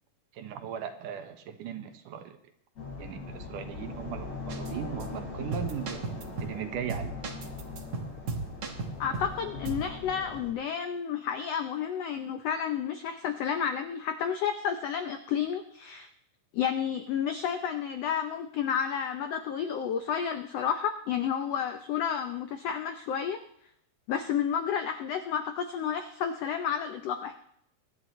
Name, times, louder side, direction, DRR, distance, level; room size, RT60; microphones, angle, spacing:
voice 1, 0.3-2.4 3.0-6.0 6.4-7.1, right 8 dB, 80° right, 7 dB, 2.7 m, -38 dB
sound 1, 2.8-10.5, left 3 dB, 50° left, 5.4 m, -40 dB
sound 2, 4.5-4.7 5.0-5.1 5.5-6.6 6.9-9.4 9.7-9.9, right 4 dB, 50° right, 1.3 m, -36 dB
voice 2, 9.0-16.1 16.5-23.4 24.1-27.4, left 8 dB, 80° left, 8 dB, 1.4 m, -31 dB
24.0 x 11.0 x 3.1 m, 0.73 s
omnidirectional pair, 3.7 m